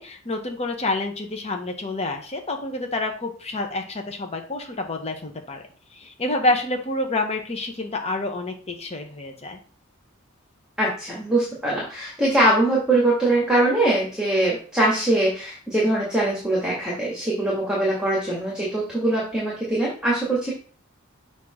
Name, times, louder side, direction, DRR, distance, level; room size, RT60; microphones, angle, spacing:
voice 1, 0.0-5.6 6.0-9.6, left 2 dB, 30° left, 3 dB, 1.1 m, -28 dB
voice 2, 10.8-20.5, right 1 dB, 5° right, -5 dB, 1.7 m, -22 dB
6.7 x 2.8 x 5.0 m, 0.41 s
head